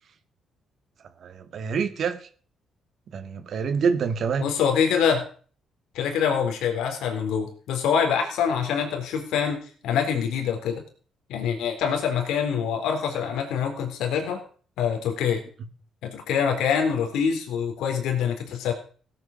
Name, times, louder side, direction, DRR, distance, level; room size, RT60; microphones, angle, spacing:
voice 1, 1.2-2.3 3.1-4.5, right 6 dB, 60° right, 7 dB, 2.2 m, -26 dB
voice 2, 4.4-5.3 5.9-9.6 9.8-10.8 11.3-14.4 14.8-15.4 16.0-18.7, left 7 dB, 85° left, 4 dB, 4.0 m, -25 dB
17.0 x 9.4 x 6.7 m, 0.42 s
cardioid pair, 90°, 0 cm